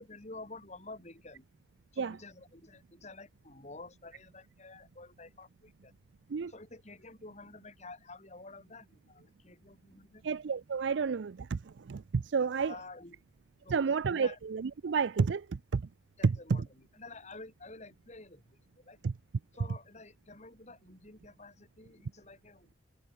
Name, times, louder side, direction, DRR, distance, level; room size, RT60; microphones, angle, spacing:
voice 1, 0.0-1.4 1.9-5.9 6.5-10.3 12.4-13.2 13.6-14.4 16.2-16.6 16.9-19.0 19.5-22.7, left 3 dB, 40° left, 3.8 m, -50 dB
voice 2, 10.2-12.8 13.7-15.9 16.2-16.7 19.0-19.1, right 5 dB, 75° right, 0.5 m, -31 dB
head